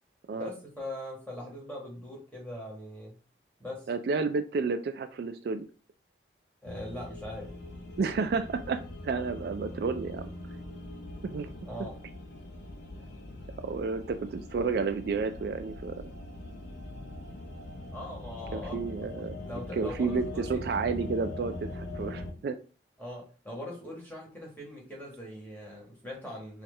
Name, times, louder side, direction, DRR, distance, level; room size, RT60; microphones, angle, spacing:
voice 1, 0.3-3.1 3.6-3.9 6.6-7.5 11.6-12.0 17.9-18.8 19.4-20.6 23.0-26.6, left 1 dB, 10° left, -3 dB, 1.4 m, -41 dB
voice 2, 3.9-5.7 8.0-10.3 11.2-11.5 13.6-15.9 18.5-19.4 19.7-22.6, right 4 dB, 60° right, 9 dB, 0.3 m, -31 dB
sound 1, 6.7-22.3, left 1 dB, 75° left, 0.7 m, -42 dB
4.3 x 2.4 x 3.2 m, 0.37 s
head